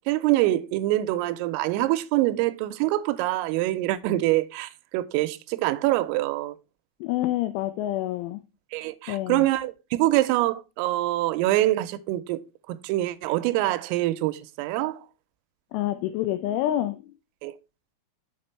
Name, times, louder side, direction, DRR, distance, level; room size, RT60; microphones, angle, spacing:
voice 1, 0.1-6.6 8.7-12.4 12.7-15.1 17.4-17.5, right 16 dB, 85° right, 3.2 m, -25 dB
voice 2, 7.0-8.4 9.1-9.5 15.7-17.1, left 13 dB, 90° left, 2.7 m, -27 dB
7.0 x 5.2 x 4.3 m
omnidirectional pair, 6.0 m